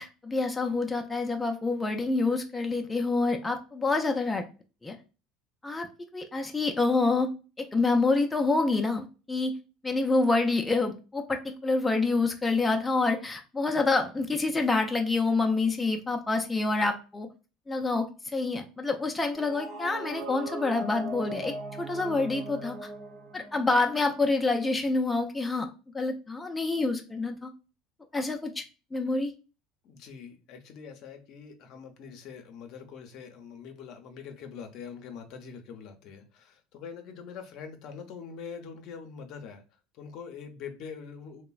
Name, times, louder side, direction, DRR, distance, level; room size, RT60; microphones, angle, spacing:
voice 1, 0.0-4.5 4.8-5.0 5.6-5.9 6.1-7.3 7.6-9.5 9.8-17.3 17.7-22.9 23.3-25.7 25.9-27.5 28.1-28.6 28.9-29.3, left 3 dB, 15° left, 4 dB, 0.4 m, -27 dB
sound 1, 19.3-24.3, right 2 dB, 60° right, 0.6 m, -40 dB
voice 2, 29.8-39.6 39.9-41.4, left 6 dB, 60° left, 6 dB, 0.6 m, -44 dB
3.0 x 2.0 x 2.3 m, 0.32 s
supercardioid pair, 100°, 0 cm